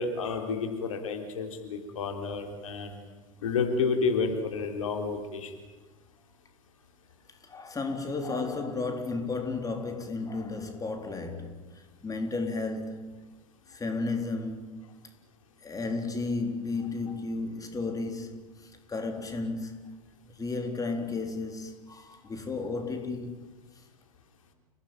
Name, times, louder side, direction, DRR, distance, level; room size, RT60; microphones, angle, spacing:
voice 1, 0.0-3.0 3.4-5.5, left 4 dB, 70° left, 3.7 m, -30 dB
voice 2, 7.4-13.4 13.7-15.0 15.6-20.0 20.3-23.5, left 3 dB, 20° left, 4.1 m, -33 dB
29.5 x 18.5 x 9.1 m
figure-of-eight pair, 80°, 18 cm